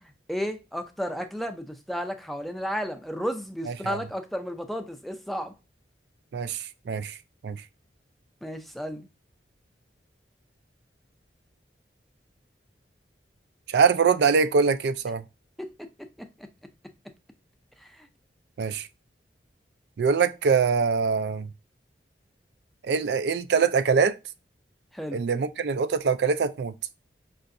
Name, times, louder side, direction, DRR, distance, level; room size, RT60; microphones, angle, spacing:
voice 1, 0.0-5.5 8.4-9.1 15.6-15.9 16.2-16.5 17.8-18.1 24.9-25.2, equal, ahead, 0.4 m, -33 dB
voice 2, 6.3-7.1 7.4-7.6 13.7-15.2 18.6-18.8 20.0-21.5 22.9-24.2 25.1-26.7, right 5 dB, 75° right, 0.4 m, -23 dB
5.5 x 2.5 x 2.6 m
head